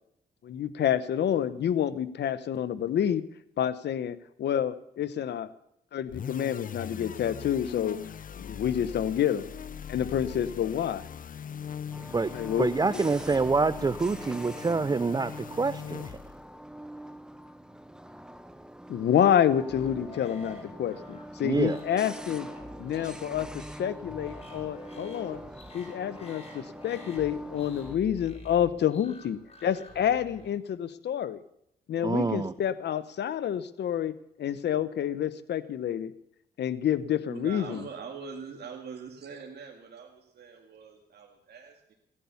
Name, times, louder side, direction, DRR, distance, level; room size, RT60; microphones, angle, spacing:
voice 1, 0.4-3.2 3.6-5.5 5.9-8.0 8.4-9.5 9.9-11.0 12.3-13.1 18.9-22.5 22.8-23.5 23.8-25.4 25.7-31.4 31.9-34.1 34.4-36.1 36.6-37.8, left 9 dB, 75° left, 14 dB, 0.9 m, -28 dB
sound 1, 6.1-16.5, left 8 dB, 50° left, 0.6 m, -41 dB
sound 2, 11.9-28.0, right 1 dB, 5° right, 0.9 m, -44 dB
voice 2, 12.6-16.2 21.4-21.8 32.0-32.5, right 4 dB, 25° right, 15 dB, 0.5 m, -26 dB
sound 3, 19.7-30.5, left 2 dB, 35° left, 7.4 m, -48 dB
voice 3, 37.3-41.9, right 6 dB, 70° right, 1 dB, 2.2 m, -43 dB
16.0 x 10.0 x 7.0 m, 0.75 s
cardioid pair, 65°, 18 cm